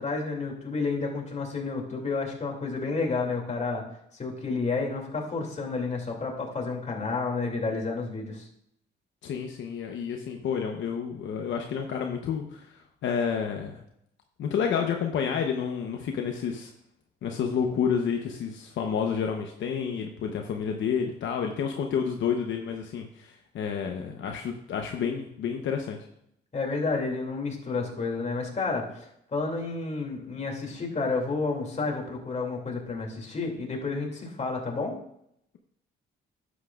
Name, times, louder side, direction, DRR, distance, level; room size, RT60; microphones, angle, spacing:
voice 1, 0.0-3.8 4.2-8.5 26.5-35.0, left 4 dB, 35° left, 0 dB, 2.6 m, -30 dB
voice 2, 9.2-13.8 14.4-16.7 17.2-26.0, left 7 dB, 70° left, 3 dB, 0.9 m, -30 dB
11.0 x 8.2 x 2.4 m, 0.74 s
cardioid pair, 90°, 20 cm